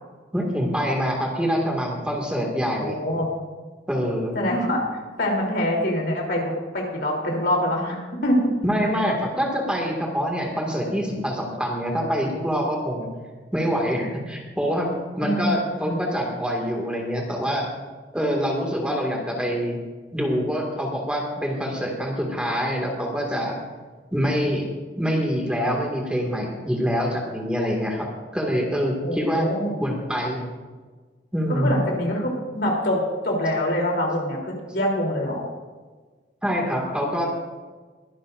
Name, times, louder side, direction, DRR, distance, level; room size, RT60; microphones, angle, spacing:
voice 1, 0.3-3.0 3.9-4.4 8.6-13.1 13.5-14.9 15.2-17.7 18.1-19.8 20.1-23.6 24.1-24.7 25.0-28.1 28.3-29.5 29.8-30.5 31.3-31.7 36.4-37.3, equal, 5° right, -1 dB, 2.1 m, -25 dB
voice 2, 2.8-3.3 4.3-4.8 5.2-8.5 8.8-8.9 15.2-16.0 29.0-29.7 31.5-35.4, equal, 65° left, 0 dB, 3.3 m, -25 dB
22.5 x 11.5 x 2.6 m, 1.4 s
head